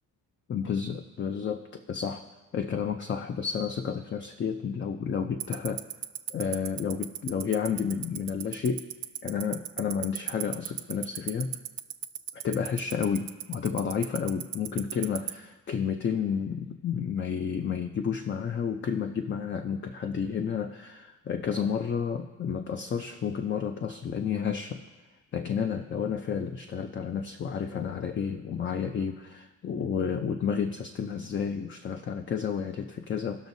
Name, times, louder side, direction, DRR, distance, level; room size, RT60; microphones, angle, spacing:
voice 1, 0.5-2.2 2.5-5.8 6.3-8.9 9.2-11.6 12.3-24.8 25.3-33.5, left 7 dB, 30° left, 7 dB, 0.4 m, -31 dB
Tick-tock, 5.4-15.3, right 14 dB, 80° right, 0.6 m, -32 dB
18.0 x 6.2 x 2.7 m, 1.2 s
cardioid pair, 110°, 36 cm